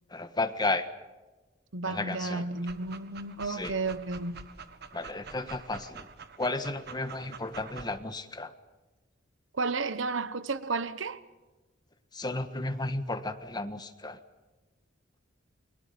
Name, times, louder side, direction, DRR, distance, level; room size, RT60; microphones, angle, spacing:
voice 1, 0.1-0.9 1.9-2.4 3.4-3.7 4.9-6.1 6.4-8.5 12.1-14.2, left 2 dB, 20° left, 1.4 m, -33 dB
voice 2, 1.7-4.5 9.5-11.2, right 3 dB, 80° right, 1.1 m, -32 dB
Dog, 2.5-8.0, right 5 dB, 60° right, 1.5 m, -47 dB
29.0 x 23.0 x 5.2 m
head